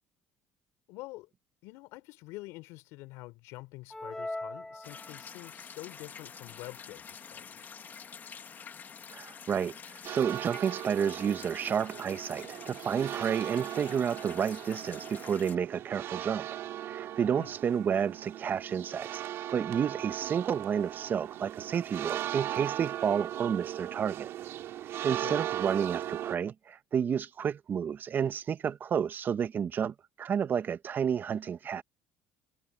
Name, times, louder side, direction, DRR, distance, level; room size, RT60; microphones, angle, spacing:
voice 1, 0.9-1.3 1.6-7.8 17.3-17.5 25.0-25.4, left 21 dB, 80° left, 3.9 m, -47 dB
sound 1, 3.9-5.6, left 2 dB, 10° left, 4.5 m, -40 dB
sound 2, 4.8-15.6, left 6 dB, 40° left, 1.8 m, -48 dB
voice 2, 9.1-16.5 16.9-24.3 25.0-31.8, right 7 dB, 45° right, 1.4 m, -31 dB
sound 3, 10.0-26.4, right 12 dB, 65° right, 2.7 m, -38 dB
supercardioid pair, 85°, 5 cm